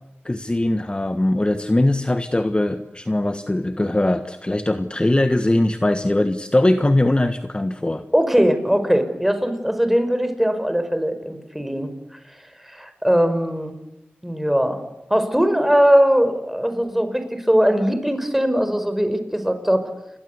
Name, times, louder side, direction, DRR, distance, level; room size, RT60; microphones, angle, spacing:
voice 1, 0.2-8.0, left 1 dB, 25° left, 9 dB, 1.4 m, -21 dB
voice 2, 8.1-11.9 12.6-13.7 14.2-14.8 15.1-19.8, equal, 5° right, 9 dB, 5.2 m, -20 dB
29.0 x 23.0 x 8.2 m, 0.87 s
wide cardioid pair, 60°, 4 cm